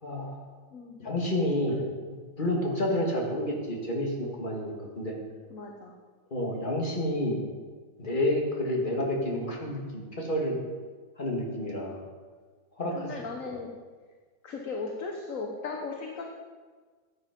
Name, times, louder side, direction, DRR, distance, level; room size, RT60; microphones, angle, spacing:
voice 1, 0.0-0.4 1.0-1.8 2.4-5.1 6.3-7.4 8.0-10.6 11.2-12.0 12.8-13.1, left 1 dB, 25° left, -1 dB, 2.6 m, -29 dB
voice 2, 5.5-5.9 13.0-13.7 14.4-16.3, left 4 dB, 50° left, 1 dB, 1.5 m, -37 dB
15.0 x 9.7 x 5.3 m, 1.5 s
omnidirectional pair, 2.0 m